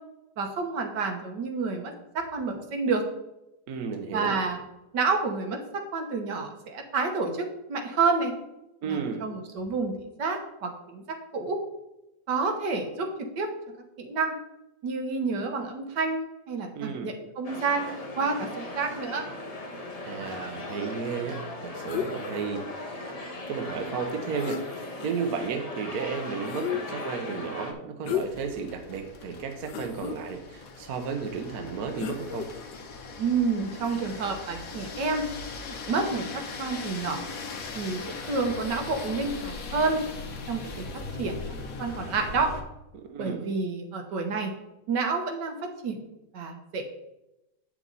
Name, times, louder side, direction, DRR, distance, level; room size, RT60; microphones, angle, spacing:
voice 1, 0.4-3.0 4.1-4.6 4.9-8.3 8.9-11.6 12.3-13.1 13.4-13.5 14.0-14.3 14.8-17.9 18.2-19.2 33.2-35.2 35.7-37.2 37.7-38.0 38.3-40.0 40.5-40.9 41.2-42.5 43.2-44.5 44.9-45.5 45.8-46.0 46.3-46.8, right 4 dB, 80° right, 4 dB, 1.8 m, -29 dB
voice 2, 3.7-4.4 8.8-9.2 16.7-17.1 20.0-23.1 23.5-32.5 42.9-43.5, right 5 dB, 65° right, 5 dB, 1.3 m, -33 dB
sound 1, 17.4-27.7, left 2 dB, 25° left, 1.0 m, -38 dB
sound 2, 21.9-22.5 24.1-24.2 24.4-25.3 26.5-27.1 28.0-28.6 29.0-29.1 29.6-30.2 32.0-32.8 33.8-34.0, left 9 dB, 90° left, 1.4 m, -34 dB
sound 3, 28.1-42.6, left 4 dB, 55° left, 1.4 m, -39 dB
9.2 x 6.1 x 4.0 m, 0.91 s
omnidirectional pair, 1.9 m